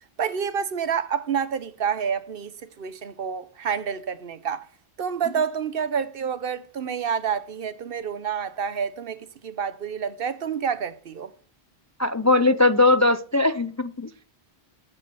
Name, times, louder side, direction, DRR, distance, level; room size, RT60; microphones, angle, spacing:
voice 1, 0.2-4.7 5.0-11.3, right 7 dB, 60° right, 1.0 m, -28 dB
voice 2, 12.0-14.2, left 2 dB, 30° left, 0.3 m, -20 dB
8.9 x 8.4 x 6.1 m
omnidirectional pair, 1.1 m